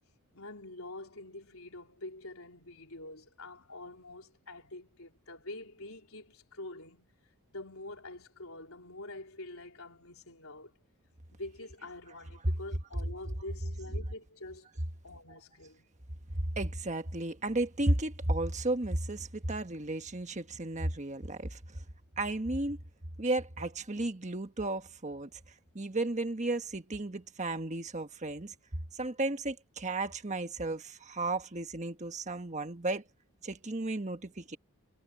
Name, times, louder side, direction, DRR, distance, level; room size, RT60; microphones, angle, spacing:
voice 1, 0.3-7.1 7.5-10.7 11.3-14.7 15.0-15.9 23.6-23.7, left 2 dB, 70° left, 4.4 m, -46 dB
voice 2, 16.6-21.6 22.2-22.8 23.2-25.3 25.7-28.5 28.9-33.0 33.4-34.6, right 2 dB, 30° right, 1.4 m, -33 dB
head